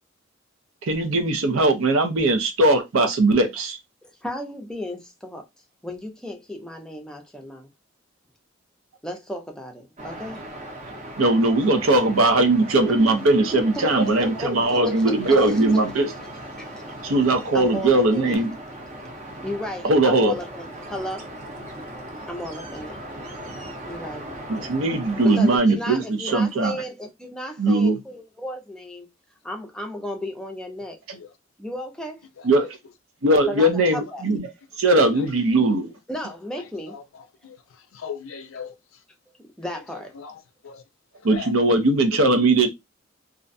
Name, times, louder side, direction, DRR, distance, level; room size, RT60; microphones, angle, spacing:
voice 1, 0.8-3.8 11.2-16.1 17.0-18.5 19.8-20.4 24.5-26.8 27.6-28.0 32.4-32.8 33.2-34.5 34.8-35.9 41.2-42.7, right 2 dB, 75° right, 0.6 m, -19 dB
voice 2, 4.0-5.4 5.8-7.7 9.0-10.4 13.5-15.6 16.6-16.7 17.5-18.4 19.4-21.3 22.3-23.0 23.9-24.3 25.2-29.1 29.4-31.0 31.6-32.2 33.5-34.2 36.1-37.0 39.6-40.2, equal, 5° left, 0.5 m, -34 dB
sound 1, 10.0-25.6, right 1 dB, 35° right, 0.7 m, -38 dB
voice 3, 37.9-38.7 40.2-40.8 41.3-41.5, left 6 dB, 75° left, 0.4 m, -37 dB
2.4 x 2.1 x 2.5 m
head